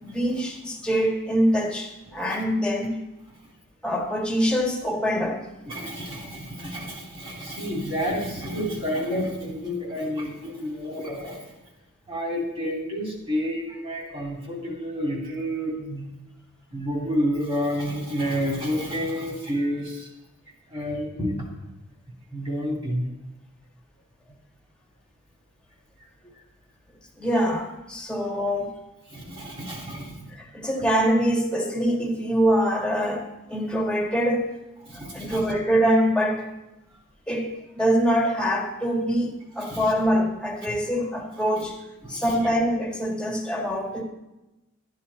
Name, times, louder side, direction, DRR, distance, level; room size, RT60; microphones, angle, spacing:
voice 1, 0.0-2.9 3.8-5.4 27.2-28.7 30.3-34.5 35.1-36.4 37.3-37.5 37.7-41.8 42.1-44.0, equal, 5° left, -1 dB, 1.7 m, -24 dB
voice 2, 5.6-11.4 12.1-16.0 16.7-20.1 20.7-21.5 22.3-23.1 29.1-30.3 34.8-35.4 39.6-39.9 40.6-40.7 42.0-42.4, equal, 25° right, -1 dB, 3.1 m, -29 dB
12.5 x 10.5 x 4.2 m, 0.99 s
head